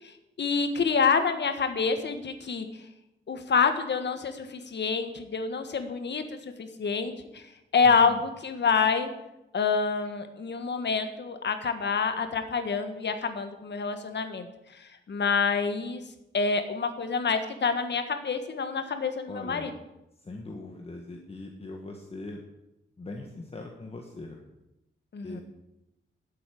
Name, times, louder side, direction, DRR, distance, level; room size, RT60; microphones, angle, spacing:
voice 1, 0.4-2.7 3.3-7.4 7.7-9.1 9.5-14.5 14.8-16.0 16.3-19.7 25.1-25.4, left 5 dB, 55° left, 8 dB, 1.6 m, -27 dB
voice 2, 7.8-8.2 19.3-19.7 20.2-22.4 23.0-24.4 25.2-25.4, left 2 dB, 30° left, 1 dB, 1.5 m, -41 dB
12.0 x 8.4 x 8.5 m, 0.91 s
wide cardioid pair, 155°, 21 cm